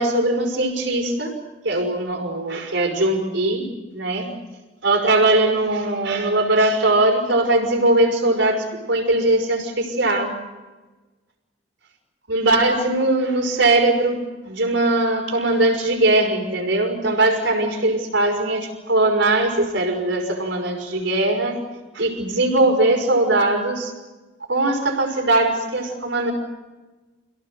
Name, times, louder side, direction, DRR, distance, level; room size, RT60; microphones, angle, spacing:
voice 1, 0.0-1.3 1.6-4.3 4.8-10.3 12.3-21.6 21.9-23.9 24.5-26.3, right 2 dB, 65° right, 4 dB, 5.8 m, -20 dB
29.0 x 17.5 x 7.9 m, 1.2 s
head